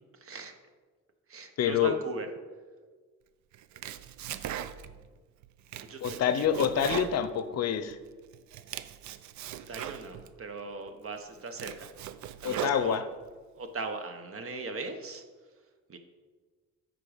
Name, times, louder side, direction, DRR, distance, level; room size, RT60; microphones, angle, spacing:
voice 1, 0.2-0.5 1.3-2.3 5.8-6.8 9.5-11.9 12.4-13.0 13.6-15.2 15.9-16.0, right 3 dB, 45° right, 7 dB, 1.0 m, -39 dB
voice 2, 1.6-2.0 6.0-8.0 12.4-13.0, left 8 dB, 60° left, 11 dB, 0.6 m, -27 dB
Domestic sounds home sounds, 3.5-5.1 5.4-8.0 8.3-10.3 10.9-11.0 11.4-13.3, right 10 dB, 70° right, 0.5 m, -39 dB
9.9 x 3.8 x 5.0 m, 1.4 s
cardioid pair, 90°, 30 cm